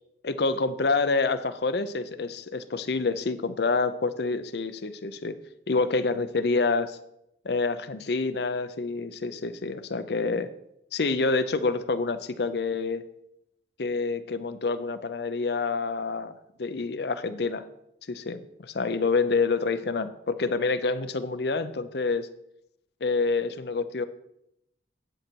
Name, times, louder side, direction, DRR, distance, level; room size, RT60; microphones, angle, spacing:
voice 1, 0.2-5.4 5.7-7.0 7.4-10.5 10.9-13.0 13.8-16.3 16.6-17.7 18.1-22.3 23.0-24.0, left 3 dB, 60° left, 12 dB, 0.6 m, -27 dB
8.6 x 7.9 x 4.5 m, 0.80 s
head